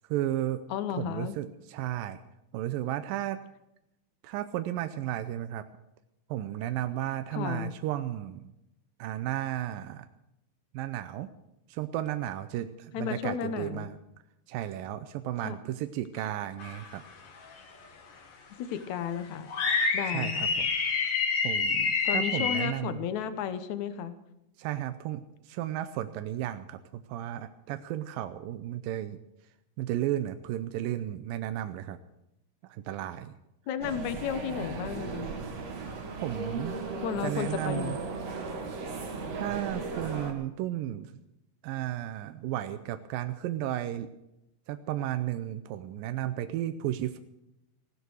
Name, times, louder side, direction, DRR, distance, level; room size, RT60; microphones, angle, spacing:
voice 1, 0.1-0.6 1.0-2.2 2.5-3.4 4.2-5.7 6.3-8.5 9.0-10.1 10.7-11.3 11.7-14.0 14.5-17.0 20.1-20.7 21.4-23.1 24.6-29.2 29.8-32.0 32.6-33.3 36.1-36.8 37.2-38.0 39.3-41.1 41.6-44.1 44.7-47.2, right 13 dB, 80° right, 10 dB, 2.1 m, -34 dB
voice 2, 0.7-1.3 7.3-7.7 12.9-13.9 15.4-15.6 18.6-19.5 19.9-20.6 22.1-24.2 33.7-35.3 37.0-38.0, left 8 dB, 70° left, 11 dB, 1.8 m, -33 dB
sound 1, 16.6-17.1 17.5-17.6 19.5-22.7, left 5 dB, 50° left, 2.0 m, -28 dB
sound 2, 33.8-40.3, right 4 dB, 50° right, 2.6 m, -36 dB
16.0 x 13.0 x 6.3 m, 0.86 s
omnidirectional pair, 4.6 m